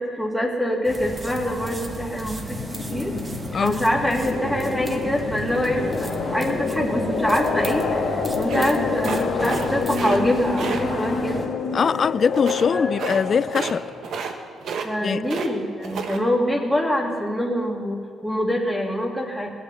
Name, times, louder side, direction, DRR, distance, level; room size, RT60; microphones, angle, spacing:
voice 1, 0.0-2.6 2.9-3.1 3.6-11.4 12.7-12.9 14.8-19.6, equal, ahead, 2.4 m, -25 dB
sound 1, 0.8-11.5, right 2 dB, 20° right, 1.4 m, -35 dB
sound 2, 1.0-14.4, left 4 dB, 65° left, 1.8 m, -28 dB
sound 3, 8.5-9.7 9.9-10.2 10.6-10.8 12.3-12.7 13.0-13.2 13.5-13.8 14.0-14.4 14.6-15.5 15.8-16.2, right 6 dB, 70° right, 1.3 m, -30 dB
voice 2, 11.7-13.9 15.0-15.2, left 6 dB, 45° left, 0.3 m, -22 dB
19.0 x 8.6 x 7.0 m
cardioid pair, 90°, 0 cm